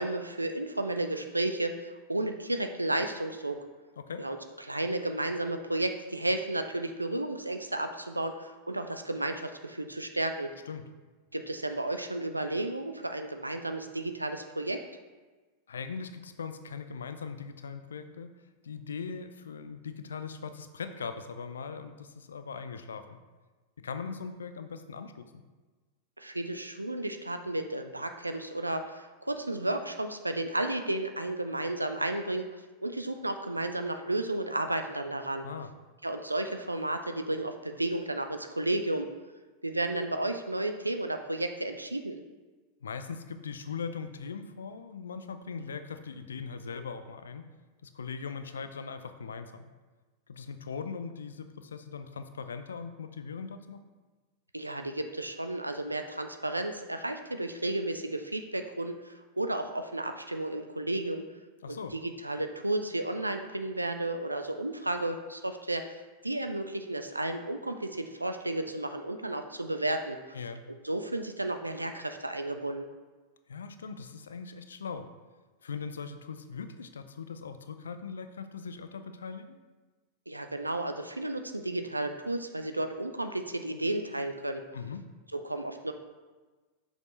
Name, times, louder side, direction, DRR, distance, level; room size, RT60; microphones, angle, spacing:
voice 1, 0.0-3.6 4.2-10.5 11.3-14.8 26.2-32.5 32.8-35.5 36.0-39.1 39.6-42.2 54.5-61.2 61.7-70.4 70.8-72.9 80.3-84.6 85.3-85.9, right 1 dB, 85° right, 7 dB, 0.3 m, -33 dB
voice 2, 15.7-18.3 18.6-23.2 23.8-25.4 35.4-35.7 42.8-47.4 47.8-49.7 50.3-53.8 61.6-61.9 70.3-70.6 73.5-75.1 75.6-79.6 84.7-85.1, left 5 dB, 70° left, 9 dB, 0.4 m, -40 dB
6.2 x 4.9 x 3.1 m, 1.3 s
figure-of-eight pair, 90°, 0 cm